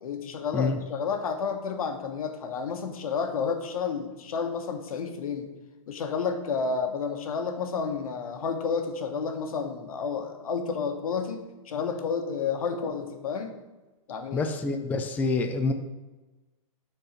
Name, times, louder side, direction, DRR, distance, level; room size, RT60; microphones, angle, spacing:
voice 1, 0.0-5.5 5.9-13.5 14.1-14.5, left 5 dB, 85° left, 6 dB, 1.3 m, -31 dB
voice 2, 14.3-15.7, left 3 dB, 10° left, 5 dB, 0.4 m, -27 dB
7.5 x 4.5 x 6.6 m, 1.2 s
hypercardioid pair, 145°, 18 cm